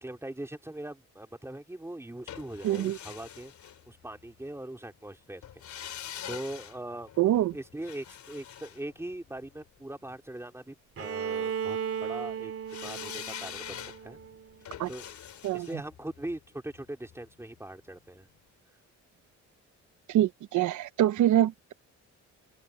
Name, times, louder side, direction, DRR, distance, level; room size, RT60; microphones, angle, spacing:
voice 1, 0.0-3.5 3.9-5.4 6.3-7.1 7.5-12.5 12.8-14.2 14.9-15.1 15.5-18.3, right 1 dB, 10° right, 3.2 m, -41 dB
sound 1, 2.3-4.4 5.4-9.7 12.7-17.7 18.0-18.1, left 10 dB, 70° left, 3.2 m, -44 dB
voice 2, 2.6-3.0 7.2-7.6 14.8-14.9 15.4-15.8 20.1-21.7, right 12 dB, 75° right, 0.9 m, -25 dB
Bowed string instrument, 11.0-14.8, right 7 dB, 50° right, 3.3 m, -36 dB
open air
cardioid pair, 90°, 30 cm